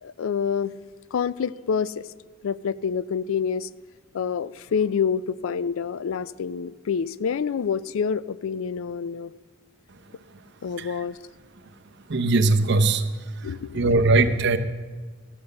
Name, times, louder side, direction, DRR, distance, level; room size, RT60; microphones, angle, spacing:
voice 1, 0.0-0.7 1.1-2.0 2.4-3.7 4.1-9.3 10.6-11.2 13.4-14.0, left 6 dB, 75° left, 18 dB, 0.4 m, -27 dB
voice 2, 12.1-13.0 13.7-14.6, right 3 dB, 55° right, 8 dB, 0.7 m, -19 dB
13.0 x 6.7 x 6.7 m, 1.4 s
head